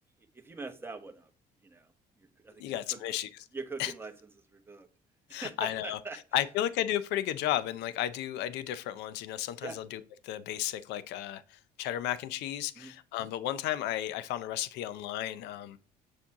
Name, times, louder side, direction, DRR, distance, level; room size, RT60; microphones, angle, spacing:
voice 1, 0.3-1.3 1.6-1.9 2.2-3.0 3.5-4.1 4.5-4.9 5.3-6.2 9.6-9.8 12.8-12.9, right 4 dB, 15° right, 1.2 m, -42 dB
voice 2, 2.6-3.3 3.8-3.9 5.3-6.0 6.3-15.8, left 12 dB, 90° left, 0.5 m, -33 dB
7.2 x 4.4 x 3.6 m
cardioid pair, 110°, 17 cm